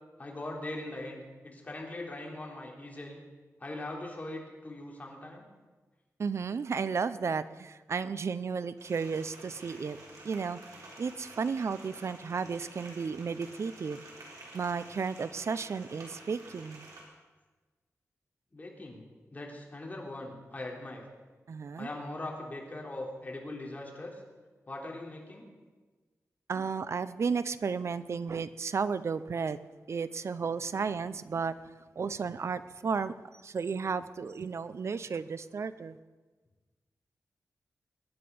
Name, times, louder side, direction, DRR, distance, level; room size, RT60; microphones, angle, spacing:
voice 1, 0.2-3.2 3.6-5.4 18.5-19.0 19.3-21.1 21.8-24.2 24.7-25.5, left 2 dB, 30° left, -1 dB, 3.4 m, -41 dB
voice 2, 6.2-10.0 10.2-10.6 11.0-14.0 14.5-16.9 21.5-21.9 26.5-29.6 29.9-31.5 32.0-33.1 33.4-36.0, right 5 dB, 60° right, 14 dB, 0.6 m, -33 dB
sound 1, 8.8-17.0, right 2 dB, 85° right, 4.3 m, -50 dB
22.5 x 10.0 x 5.4 m, 1.3 s
wide cardioid pair, 110°, 5 cm